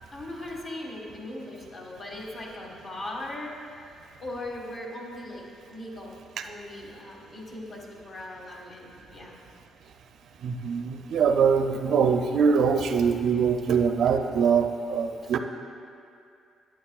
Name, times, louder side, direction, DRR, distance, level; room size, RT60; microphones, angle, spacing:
voice 1, 0.1-5.5 5.7-6.2 6.4-9.4, left 1 dB, 50° left, -1 dB, 1.7 m, -39 dB
voice 2, 10.4-15.4, right 6 dB, 70° right, 6 dB, 0.4 m, -23 dB
11.0 x 8.8 x 2.4 m, 2.4 s
cardioid pair, 90°, 0 cm